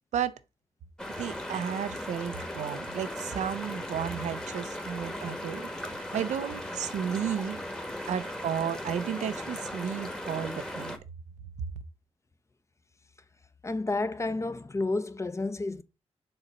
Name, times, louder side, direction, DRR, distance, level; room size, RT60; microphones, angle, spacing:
sound 1, 1.0-11.0, left 1 dB, 5° left, 1.3 m, -37 dB
voice 1, 1.2-7.6 8.1-11.0, right 8 dB, 90° right, 0.7 m, -33 dB
voice 2, 13.6-15.8, left 2 dB, 25° left, 0.8 m, -30 dB
7.0 x 4.0 x 5.5 m
cardioid pair, 85°, 12 cm